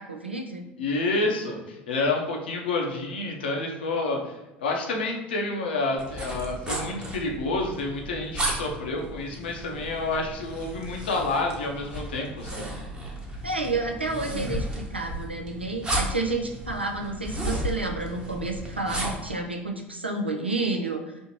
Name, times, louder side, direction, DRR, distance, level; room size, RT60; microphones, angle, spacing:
voice 1, 0.0-0.6 13.4-21.2, right 2 dB, 85° right, 3 dB, 0.4 m, -30 dB
voice 2, 0.8-12.7, left 2 dB, 70° left, 1 dB, 0.7 m, -29 dB
sound 1, 6.0-19.3, right 1 dB, 15° right, 0.9 m, -34 dB
4.3 x 2.8 x 2.9 m, 1.0 s
figure-of-eight pair, 70°, 6 cm